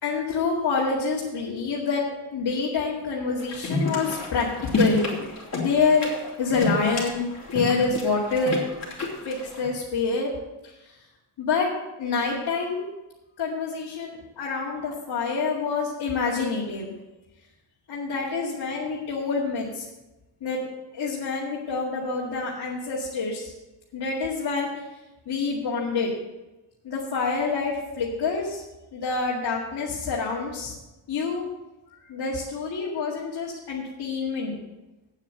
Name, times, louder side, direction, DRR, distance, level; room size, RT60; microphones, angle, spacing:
voice 1, 0.0-2.0 2.3-5.0 5.6-6.1 6.4-7.2 7.5-8.6 9.3-10.3 10.6-11.0 11.4-11.7 12.0-12.9 13.4-16.9 17.9-19.9 20.4-20.7 20.9-23.5 23.9-24.8 25.3-26.1 26.8-28.6 28.9-30.7 31.1-31.4 31.9-34.6, left 4 dB, 55° left, -4 dB, 2.3 m, -27 dB
sound 1, 3.4-9.7, left 3 dB, 35° left, 3.7 m, -29 dB
8.5 x 7.4 x 8.1 m, 1.1 s
cardioid pair, 90°, 47 cm